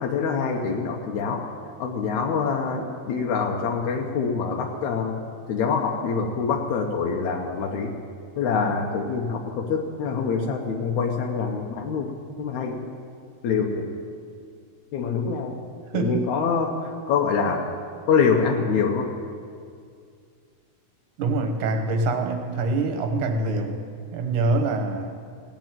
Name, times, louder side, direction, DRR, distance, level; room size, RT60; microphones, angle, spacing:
voice 1, 0.0-1.5 1.8-5.2 5.5-7.9 8.4-12.1 12.4-12.9 13.4-13.9 14.9-15.5 15.9-17.7 18.1-19.1, left 5 dB, 80° left, 1 dB, 2.2 m, -25 dB
voice 2, 15.9-16.2 21.2-23.7 24.1-25.1, right 2 dB, 90° right, 5 dB, 2.7 m, -24 dB
16.5 x 6.1 x 9.0 m, 2.2 s
omnidirectional pair, 3.3 m